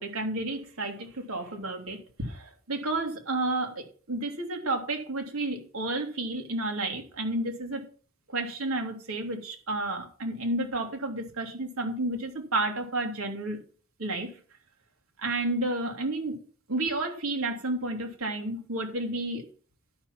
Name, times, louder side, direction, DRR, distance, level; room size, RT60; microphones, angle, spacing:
voice 1, 0.0-7.8 8.3-13.6 14.0-14.3 15.2-16.4 16.7-19.4, right 2 dB, 80° right, 3 dB, 2.7 m, -31 dB
11.5 x 5.8 x 7.2 m, 0.42 s
head